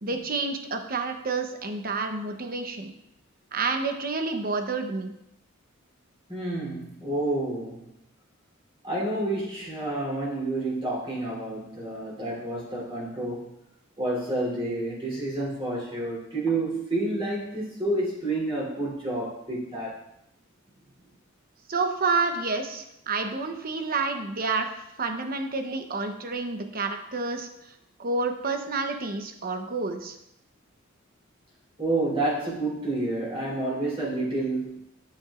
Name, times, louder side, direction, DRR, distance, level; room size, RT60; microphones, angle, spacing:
voice 1, 0.0-2.9 3.5-5.1 21.7-24.7 25.0-27.5 28.0-30.2, right 3 dB, 45° right, 5 dB, 0.9 m, -29 dB
voice 2, 6.3-7.9 8.8-13.5 14.0-20.0 31.8-34.8, right 2 dB, 25° right, -4 dB, 3.4 m, -29 dB
10.0 x 8.5 x 2.5 m, 0.81 s
head